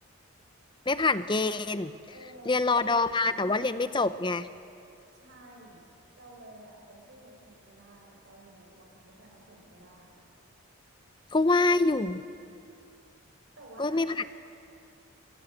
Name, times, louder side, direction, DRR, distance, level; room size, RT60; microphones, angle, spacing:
voice 1, 0.9-1.9 2.5-4.5 11.3-12.2 13.8-14.2, left 3 dB, 20° left, 13 dB, 0.6 m, -25 dB
voice 2, 2.1-2.9 5.1-5.8 6.2-10.2 13.6-14.3, right 1 dB, 55° right, -1 dB, 6.4 m, -52 dB
27.5 x 18.0 x 8.1 m, 2.6 s
head